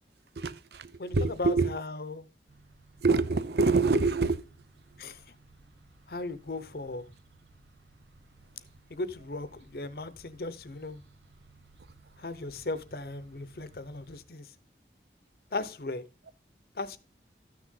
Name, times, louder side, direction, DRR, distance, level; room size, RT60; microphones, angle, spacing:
voice 1, 0.4-1.7 3.0-4.5, right 3 dB, 65° right, 0.6 m, -26 dB
voice 2, 1.0-2.3 5.0-5.2 6.1-7.1 8.9-11.0 12.2-14.5 15.5-16.0 16.8-17.0, left 2 dB, 55° left, 0.8 m, -37 dB
sound 1, 2.5-14.2, right 2 dB, 90° right, 1.2 m, -59 dB
13.0 x 6.3 x 3.8 m
head